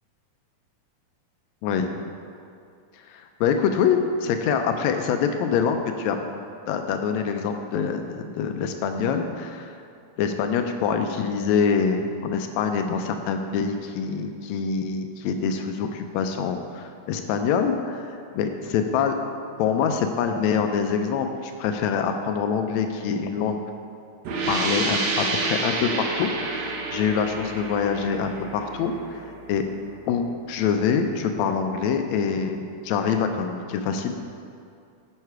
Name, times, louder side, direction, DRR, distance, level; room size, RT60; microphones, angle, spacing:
voice 1, 1.6-1.9 3.1-6.2 6.7-9.7 10.2-19.2 19.6-23.6 24.5-29.6 30.1-34.1, left 6 dB, 80° left, 6 dB, 1.7 m, -25 dB
sound 1, 24.2-29.7, right 3 dB, 70° right, 2.1 m, -29 dB
9.4 x 5.8 x 4.6 m, 2.5 s
omnidirectional pair, 3.4 m